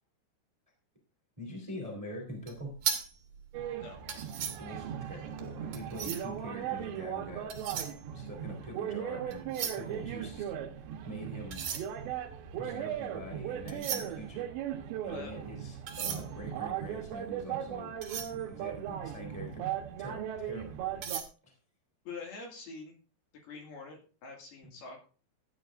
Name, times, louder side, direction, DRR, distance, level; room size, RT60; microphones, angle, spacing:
voice 1, 1.4-2.7 4.6-7.5 8.1-10.4 11.0-11.7 12.6-14.5 15.0-17.9 18.2-21.0 21.4-21.5 24.6-24.7, equal, 10° right, 1 dB, 2.3 m, -44 dB
sound 1, 2.4-6.4 7.2-8.9 9.2-10.9 11.4-19.4 19.9-20.0 20.4-21.2, right 8 dB, 55° right, 2.7 m, -39 dB
sound 2, 3.5-21.2, right 10 dB, 75° right, 3.3 m, -38 dB
voice 2, 3.7-4.0 15.1-15.4 22.1-23.0 23.4-25.0, left 4 dB, 60° left, 1 dB, 3.9 m, -45 dB
15.0 x 10.0 x 2.6 m, 0.37 s
omnidirectional pair, 5.2 m